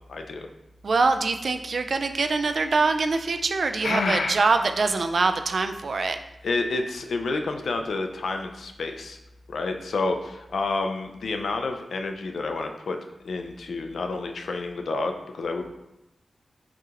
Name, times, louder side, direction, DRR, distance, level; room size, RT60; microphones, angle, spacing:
voice 1, 0.1-0.5 3.8-4.4 6.4-9.2 9.5-13.0 13.2-15.7, left 3 dB, 90° left, 5 dB, 0.4 m, -29 dB
voice 2, 0.8-6.2, right 3 dB, 65° right, 7 dB, 0.3 m, -24 dB
5.9 x 2.9 x 2.4 m, 0.91 s
wide cardioid pair, 80°, 0 cm